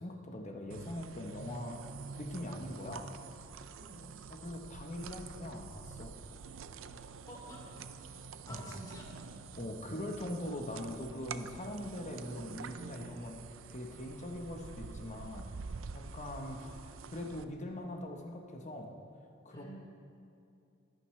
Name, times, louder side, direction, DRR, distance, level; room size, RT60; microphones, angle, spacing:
voice 1, 0.0-1.8 2.2-3.1 4.3-6.2 8.5-8.7 9.6-15.5 15.9-16.8 17.1-18.9 19.4-19.7, left 1 dB, 35° left, 2 dB, 1.1 m, -42 dB
sound 1, 0.7-17.4, right 5 dB, 75° right, 0.5 m, -47 dB
voice 2, 3.8-4.1 7.3-7.8 8.5-9.1 19.5-19.8, equal, 20° left, -4 dB, 2.9 m, -50 dB
24.5 x 9.0 x 3.3 m, 2.6 s
head